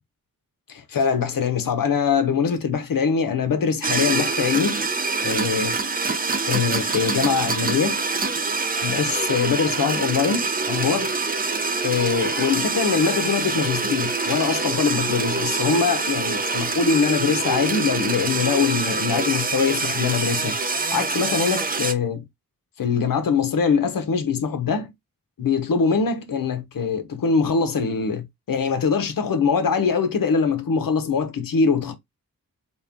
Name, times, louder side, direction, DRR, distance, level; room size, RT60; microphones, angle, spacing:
voice 1, 0.7-4.8 5.2-5.8 6.5-8.0 8.8-11.1 11.8-20.6 20.9-22.3 22.8-24.9 25.4-32.0, left 5 dB, 65° left, 0.9 m, -23 dB
sound 1, 3.8-21.9, right 4 dB, 25° right, 0.5 m, -25 dB
4.2 x 2.3 x 3.5 m
wide cardioid pair, 95°, 36 cm